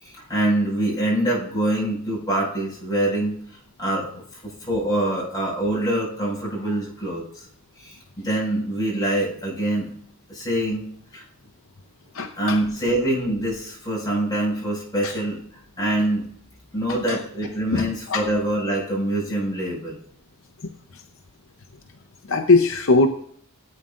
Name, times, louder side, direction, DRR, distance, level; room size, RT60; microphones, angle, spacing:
voice 1, 0.0-3.4 3.8-4.1 4.4-7.5 7.8-9.9 10.3-11.2 12.4-15.4 15.8-16.2 16.7-20.0, right 1 dB, 20° left, -5 dB, 5.3 m, -25 dB
voice 2, 12.1-12.6 15.0-15.1 16.9-17.2 17.7-18.2 20.9-21.0 22.3-23.1, left 3 dB, 60° left, 6 dB, 0.7 m, -20 dB
17.5 x 8.8 x 2.5 m, 0.63 s
head